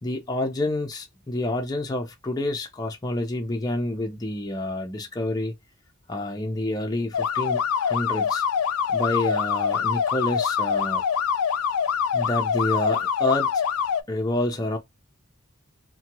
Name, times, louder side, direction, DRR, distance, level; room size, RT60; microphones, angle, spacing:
voice 1, 0.0-5.5 6.1-8.4 8.9-11.0 12.1-13.5 14.1-14.8, left 1 dB, 20° left, 0.5 m, -28 dB
sound 1, 7.1-14.0, left 7 dB, 85° left, 0.4 m, -24 dB
2.8 x 2.2 x 2.9 m
head